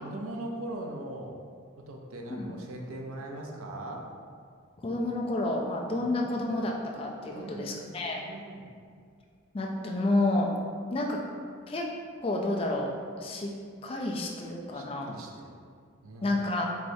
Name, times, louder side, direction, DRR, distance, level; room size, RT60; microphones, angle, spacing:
voice 1, 0.0-1.4 1.8-4.1 5.9-6.3 7.3-8.7 14.7-15.6 16.0-16.4, right 1 dB, 90° right, 1 dB, 0.6 m, -40 dB
voice 2, 4.8-8.2 9.5-10.5 10.9-11.2 11.7-11.9 12.2-12.9 13.2-13.5 13.8-15.2 16.2-16.7, left 2 dB, 25° left, 0 dB, 0.3 m, -30 dB
4.6 x 3.2 x 2.6 m, 2.1 s
head